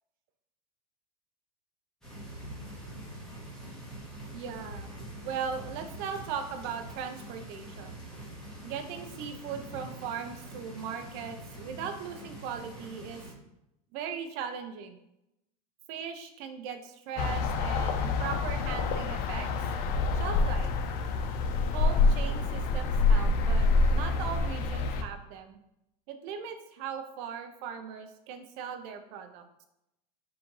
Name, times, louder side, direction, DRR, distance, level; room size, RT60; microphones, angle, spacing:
sound 1, 2.0-13.3, right 1 dB, 5° left, 1.4 m, -44 dB
voice 1, 4.3-4.9 5.2-7.9 8.6-13.2 13.9-15.0 15.9-19.7 20.1-20.7 21.7-25.6 26.1-29.4, right 7 dB, 50° right, 7 dB, 0.6 m, -38 dB
sound 2, 17.2-25.0, left 3 dB, 45° left, 0.5 m, -27 dB
3.7 x 2.5 x 4.6 m, 0.85 s
hypercardioid pair, 115°, 21 cm